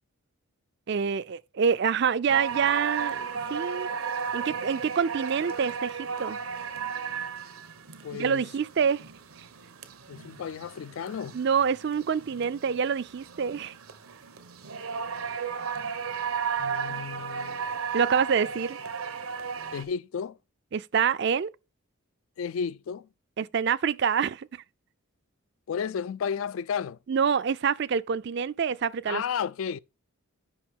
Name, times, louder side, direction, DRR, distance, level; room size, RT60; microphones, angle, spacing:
voice 1, 0.9-3.9 4.3-6.4 8.1-9.0 11.3-13.7 17.9-18.8 20.7-21.5 23.4-24.5 27.1-29.2, right 6 dB, 50° right, 0.4 m, -26 dB
sound 1, 2.3-19.8, right 6 dB, 85° right, 1.0 m, -35 dB
voice 2, 8.0-8.5 10.1-11.4 16.6-17.6 19.7-20.4 22.4-23.1 25.7-27.0 29.1-29.8, left 7 dB, 70° left, 0.3 m, -33 dB
8.6 x 5.5 x 3.6 m
head